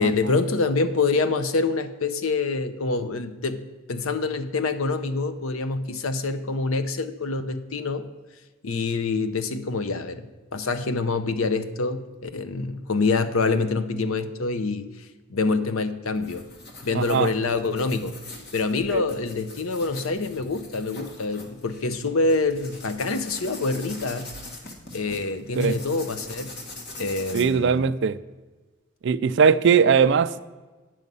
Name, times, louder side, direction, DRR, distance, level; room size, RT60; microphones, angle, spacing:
voice 1, 0.0-8.1 8.6-14.9 15.3-16.4 16.8-18.2 18.5-24.3 24.9-26.6 27.0-27.9, left 3 dB, 80° left, 0.7 m, -26 dB
sound 1, 16.1-27.4, left 2 dB, 50° left, 1.4 m, -42 dB
voice 2, 16.9-17.3 18.9-19.0 25.6-25.8 27.3-28.2 29.0-30.4, right 6 dB, 55° right, 0.4 m, -20 dB
9.4 x 6.3 x 5.4 m
head